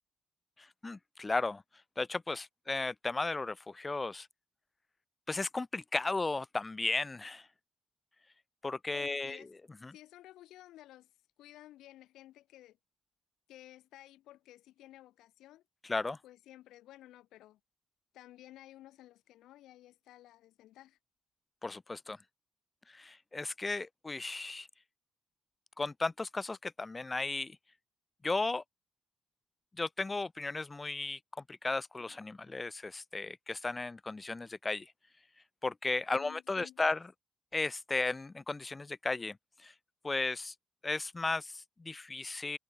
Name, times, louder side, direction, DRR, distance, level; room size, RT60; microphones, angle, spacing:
voice 1, 0.6-1.6 2.0-4.3 5.3-7.5 8.6-9.4 9.8-9.9 15.8-16.2 21.6-22.2 22.9-24.7 25.8-27.6 28.2-28.6 29.8-31.2 31.5-34.9 35.6-37.0 37.5-39.7 40.0-40.5 40.8-42.6, left 3 dB, 20° left, 0.6 m, -35 dB
voice 2, 8.9-9.5 9.9-11.1 11.4-12.8 13.5-15.6 16.2-17.6 18.1-21.0 36.1-36.9, left 14 dB, 85° left, 5.3 m, -54 dB
cardioid pair, 90°, 0 cm